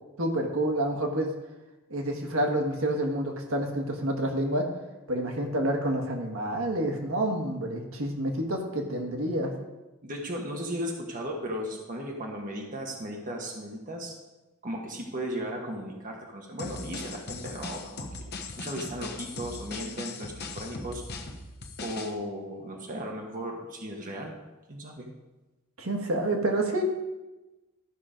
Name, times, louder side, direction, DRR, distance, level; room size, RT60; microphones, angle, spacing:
voice 1, 0.2-1.3 1.9-4.7 5.1-9.5 25.8-26.8, right 1 dB, 70° right, 3 dB, 1.5 m, -28 dB
voice 2, 10.0-14.1 14.6-18.1 18.6-21.0 21.8-24.3 24.7-25.1, equal, 40° right, 0 dB, 1.3 m, -36 dB
sound 1, 16.6-22.1, left 3 dB, 50° left, 1.1 m, -39 dB
13.0 x 5.8 x 5.0 m, 1.1 s
head